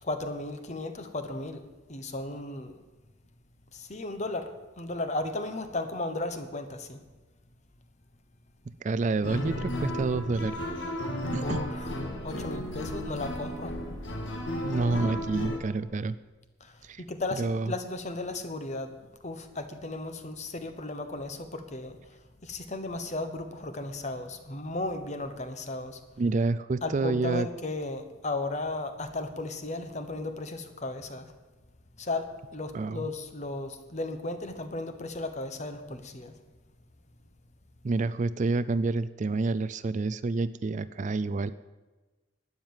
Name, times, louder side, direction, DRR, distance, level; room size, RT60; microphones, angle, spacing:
voice 1, 0.0-1.6 1.9-2.7 3.7-7.0 11.4-13.8 16.6-18.9 19.2-26.0 26.8-31.3 32.0-36.3, left 2 dB, 35° left, 9 dB, 1.1 m, -35 dB
voice 2, 8.8-10.6 11.3-11.6 14.6-16.2 16.8-17.0 17.4-17.7 26.2-27.5 32.7-33.1 37.8-41.5, right 3 dB, 40° right, 15 dB, 0.4 m, -28 dB
sound 1, 9.2-15.6, left 1 dB, 65° left, 1.9 m, -34 dB
12.0 x 9.6 x 7.3 m, 1.2 s
head